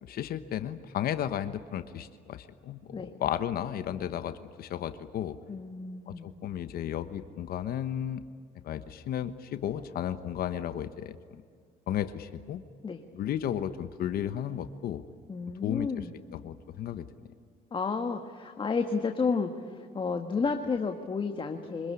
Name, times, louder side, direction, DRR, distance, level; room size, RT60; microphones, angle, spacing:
voice 1, 0.0-5.4 6.1-8.2 8.6-11.4 11.9-12.6 13.1-15.0 15.6-16.0 16.3-17.0, left 10 dB, 60° left, 11 dB, 1.2 m, -34 dB
voice 2, 5.5-6.3 12.8-13.0 15.3-16.1 17.7-21.9, left 5 dB, 30° left, 5 dB, 1.7 m, -31 dB
25.5 x 21.0 x 9.9 m, 2.1 s
cardioid pair, 110°, 17 cm